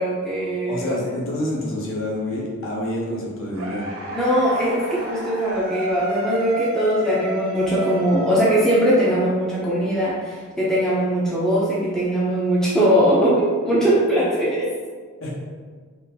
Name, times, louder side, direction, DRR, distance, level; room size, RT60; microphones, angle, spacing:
voice 1, 0.0-1.0 4.1-14.7, equal, ahead, -8 dB, 0.5 m, -20 dB
voice 2, 0.7-3.9 15.2-15.3, left 1 dB, 60° left, -4 dB, 0.8 m, -28 dB
sound 1, 3.5-9.6, right 1 dB, 65° right, 0.6 m, -32 dB
3.7 x 2.5 x 2.8 m, 1.5 s
head